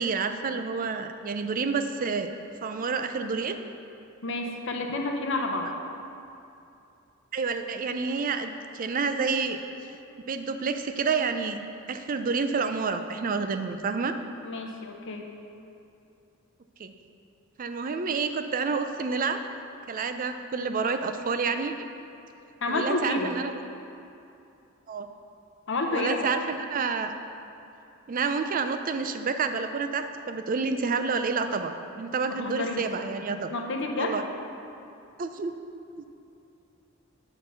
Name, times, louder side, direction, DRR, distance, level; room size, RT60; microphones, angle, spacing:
voice 1, 0.0-2.3 2.6-3.6 7.3-9.6 10.3-11.6 11.9-14.2 16.8-16.9 17.6-19.4 19.9-21.7 22.7-23.5 24.9-25.1 25.9-27.1 28.1-33.5 34.0-34.2 35.2-35.5 36.0-36.1, right 4 dB, 40° right, 8 dB, 0.4 m, -29 dB
voice 2, 4.2-5.7 14.4-15.3 22.6-23.3 25.7-26.3 32.3-32.8 33.3-34.2, left 2 dB, 65° left, 2 dB, 0.9 m, -30 dB
8.9 x 3.9 x 6.5 m, 2.7 s
head